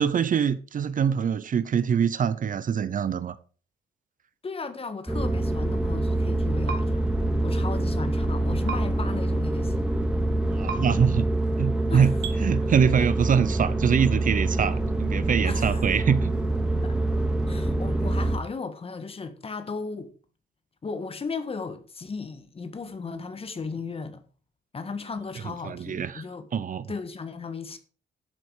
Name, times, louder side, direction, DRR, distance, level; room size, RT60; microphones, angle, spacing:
voice 1, 0.0-3.4 10.5-11.3 11.6-16.3 25.4-26.2 26.5-26.9, right 7 dB, 45° right, 0.8 m, -24 dB
voice 2, 4.4-7.1 7.4-9.9 11.9-12.1 12.4-12.5 15.4-16.2 16.8-16.9 17.5-20.1 20.8-24.2 24.7-26.5 26.9-27.8, left 4 dB, 30° left, 1.6 m, -36 dB
sound 1, 5.1-18.4, right 2 dB, 5° right, 2.5 m, -25 dB
sound 2, 6.7-6.8 8.7-8.8 10.7-10.8 12.2-12.4, right 5 dB, 80° right, 2.5 m, -32 dB
12.0 x 7.8 x 4.9 m
cardioid pair, 125°, 18 cm